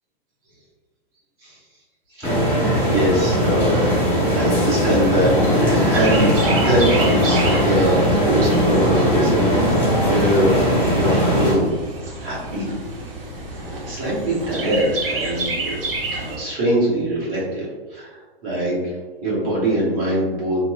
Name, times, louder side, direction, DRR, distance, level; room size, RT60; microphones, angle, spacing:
voice 1, 2.1-3.8 4.2-9.6 10.0-10.5 10.9-11.7 12.0-12.7 13.5-15.8 16.2-19.0 19.2-20.6, right 1 dB, 40° right, -7 dB, 1.2 m, -23 dB
sound 1, 2.2-11.5, equal, 5° left, 0.6 m, -19 dB
Chirp tweet, 5.5-16.4, right 2 dB, 70° right, 0.7 m, -30 dB
2.9 x 2.3 x 2.2 m, 1.3 s
hypercardioid pair, 125°, 29 cm